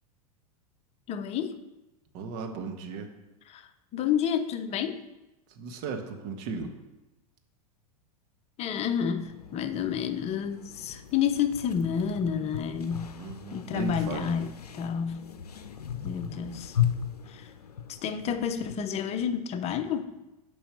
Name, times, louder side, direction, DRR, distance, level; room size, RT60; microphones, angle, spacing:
voice 1, 1.1-1.6 3.5-5.0 8.6-13.1 13.5-15.3 16.0-16.8 17.3-17.5 17.9-20.1, left 8 dB, 35° left, 9 dB, 0.8 m, -30 dB
voice 2, 2.1-3.1 5.5-6.7 13.2-14.3, right 4 dB, 50° right, 5 dB, 1.4 m, -36 dB
sound 1, 9.2-18.8, left 9 dB, 85° left, 0.6 m, -36 dB
7.2 x 5.4 x 6.3 m, 1.0 s
hypercardioid pair, 95°, 19 cm